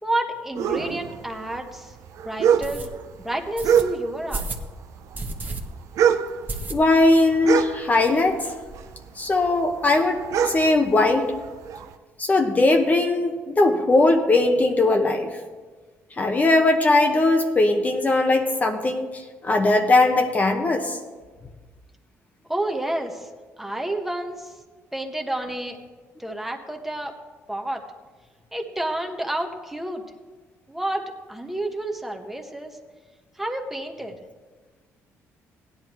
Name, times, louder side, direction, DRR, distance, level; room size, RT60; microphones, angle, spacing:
voice 1, 0.0-1.9 2.2-2.9 3.2-4.5 22.5-23.3 23.6-24.5 24.9-25.8 26.2-27.1 27.5-27.8 28.5-30.0 30.7-32.8 33.4-34.2, right 1 dB, 5° right, 2 dB, 1.2 m, -29 dB
sound 1, 0.5-4.4 4.6-8.4 8.7-11.9, right 8 dB, 70° right, 0.6 m, -24 dB
sound 2, 1.2-1.3 1.8-1.9 2.6-2.9 3.6-3.8 4.3-4.7 5.1-5.6 5.9-6.0 6.5-7.1 7.5-7.6 7.8-7.9 8.2-8.8, right 3 dB, 30° right, 1.4 m, -32 dB
voice 2, 6.7-8.5 9.2-11.3 12.2-15.4 16.2-21.0, left 2 dB, 30° left, 3 dB, 1.0 m, -20 dB
16.5 x 10.5 x 3.1 m, 1.4 s
cardioid pair, 95°, 6 cm